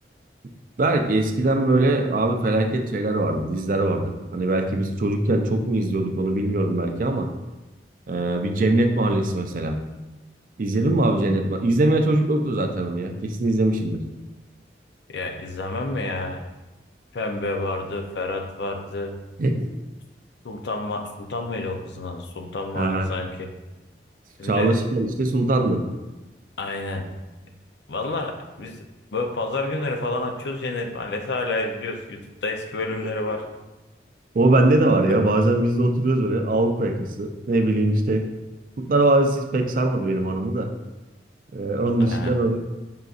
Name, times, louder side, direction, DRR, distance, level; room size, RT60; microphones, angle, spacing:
voice 1, 0.8-7.3 8.1-9.8 10.6-14.0 19.4-19.7 22.8-23.1 24.4-25.8 34.3-38.2 38.8-40.7 41.5-42.6, right 2 dB, 50° right, 5 dB, 0.4 m, -21 dB
voice 2, 15.1-16.4 17.1-19.2 20.4-23.5 24.4-24.7 26.6-27.1 27.9-28.8 29.1-33.4 35.1-35.2 42.0-42.3, left 2 dB, 80° left, 4 dB, 0.5 m, -29 dB
5.6 x 3.8 x 2.4 m, 1.1 s
head